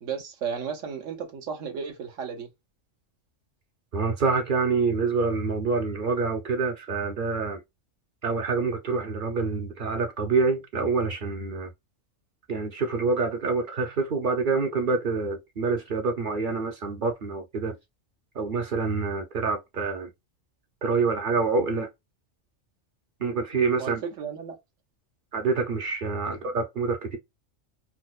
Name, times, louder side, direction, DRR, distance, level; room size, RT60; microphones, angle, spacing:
voice 1, 0.0-2.5 23.8-24.6 26.3-26.4, right 6 dB, 80° right, 1.2 m, -34 dB
voice 2, 3.9-7.6 8.2-11.7 12.5-17.8 18.3-20.1 20.8-21.9 23.2-24.0 25.3-27.2, right 4 dB, 50° right, 0.7 m, -26 dB
4.4 x 2.1 x 2.3 m
omnidirectional pair, 1.3 m